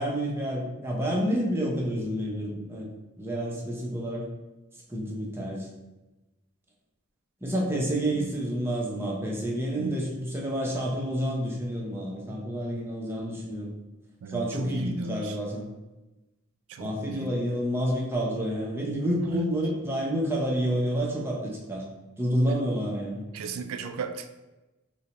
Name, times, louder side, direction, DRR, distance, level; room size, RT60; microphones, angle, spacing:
voice 1, 0.0-2.9 3.2-4.3 4.9-5.7 7.4-13.7 14.3-15.7 16.8-21.8 22.2-23.2, equal, 10° right, -3 dB, 0.6 m, -29 dB
voice 2, 14.2-15.4 16.7-17.3 19.2-19.5 23.3-24.3, right 4 dB, 85° right, 7 dB, 0.3 m, -36 dB
4.0 x 2.1 x 2.9 m, 1.1 s
head